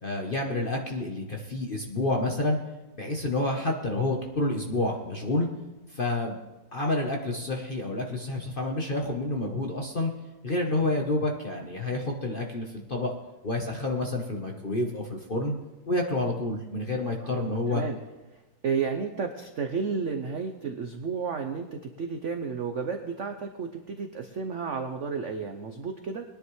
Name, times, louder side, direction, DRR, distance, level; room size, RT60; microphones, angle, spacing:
voice 1, 0.0-2.6 2.9-5.5 5.9-6.4 6.7-10.1 10.4-13.1 13.4-15.5 15.9-17.8, left 2 dB, 40° left, 1 dB, 0.8 m, -29 dB
voice 2, 17.2-18.0 18.6-26.2, right 5 dB, 65° right, 5 dB, 0.7 m, -32 dB
21.0 x 10.0 x 3.2 m, 1.1 s
omnidirectional pair, 2.2 m